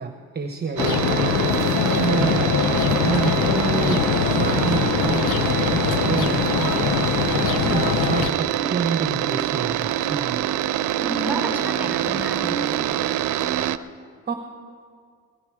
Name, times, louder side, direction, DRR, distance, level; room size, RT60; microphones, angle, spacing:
voice 1, 0.0-1.5 2.0-2.7 3.0-5.3 5.7-6.8 7.4-10.4 14.3-14.4, right 5 dB, 35° right, 6 dB, 1.0 m, -28 dB
sound 1, 0.8-8.3, left 8 dB, 90° left, 0.7 m, -22 dB
sound 2, 0.8-13.8, right 12 dB, 75° right, 0.6 m, -25 dB
voice 2, 11.0-13.0, right 1 dB, 5° right, 0 dB, 4.3 m, -31 dB
17.5 x 12.5 x 4.8 m, 2.1 s
cardioid pair, 90°, 30 cm